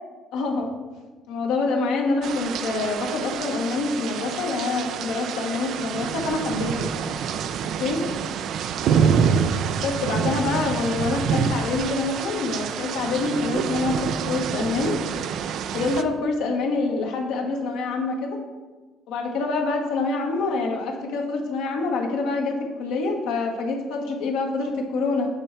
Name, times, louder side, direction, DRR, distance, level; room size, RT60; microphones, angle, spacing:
voice 1, 0.3-0.7 1.3-6.9 7.8-8.0 9.8-15.0 15.7-18.4 19.1-25.3, left 3 dB, 85° left, 1 dB, 1.2 m, -26 dB
sound 1, 2.2-16.0, right 7 dB, 70° right, 0.3 m, -27 dB
8.0 x 3.3 x 5.8 m, 1.3 s
supercardioid pair, 85°, 0 cm